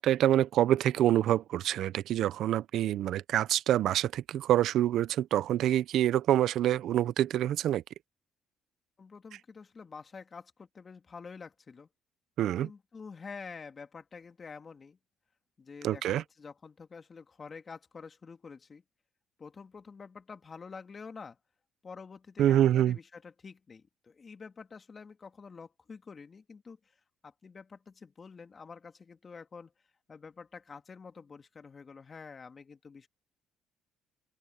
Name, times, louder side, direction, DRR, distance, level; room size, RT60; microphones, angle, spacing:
voice 1, 0.0-7.8 12.4-12.7 15.8-16.2 22.4-23.0, right 12 dB, 70° right, 0.6 m, -26 dB
voice 2, 9.0-11.9 12.6-15.0 15.6-18.8 19.4-21.4 21.8-26.8 27.2-29.7 30.1-33.1, left 5 dB, 35° left, 2.4 m, -48 dB
open air
supercardioid pair, 85°, 0 cm